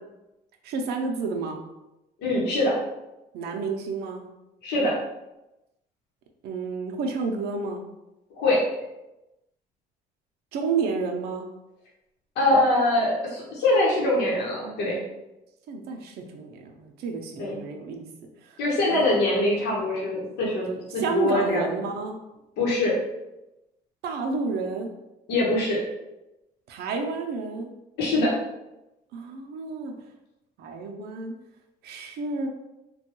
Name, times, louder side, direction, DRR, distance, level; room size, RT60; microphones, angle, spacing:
voice 1, 0.6-1.6 3.3-4.2 6.4-7.8 10.5-11.4 15.7-18.1 18.5-18.6 18.9-19.3 21.0-22.1 24.0-24.9 26.7-27.7 29.1-29.9 30.6-31.3 31.8-32.5, right 4 dB, 70° right, 2 dB, 0.6 m, -30 dB
voice 2, 2.2-2.7 4.6-4.9 8.4-8.6 12.4-15.0 17.4-17.6 18.6-21.6 22.6-23.0 25.3-25.8 28.0-28.3, left 1 dB, 80° left, -5 dB, 1.0 m, -23 dB
3.3 x 2.3 x 3.0 m, 0.96 s
cardioid pair, 110°, 17 cm